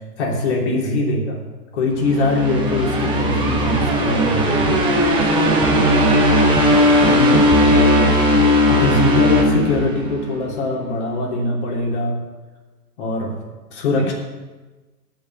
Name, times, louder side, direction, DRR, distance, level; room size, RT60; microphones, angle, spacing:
voice 1, 0.2-1.4 1.7-4.9 7.0-7.4 8.7-12.2 13.0-13.3 13.7-14.1, left 2 dB, 45° left, -1 dB, 3.1 m, -22 dB
sound 1, 2.0-10.3, equal, 10° right, 1.1 m, -17 dB
voice 2, 6.9-8.1, right 2 dB, 45° right, -1 dB, 3.0 m, -26 dB
9.1 x 7.5 x 9.1 m, 1.2 s
figure-of-eight pair, 120°, 48 cm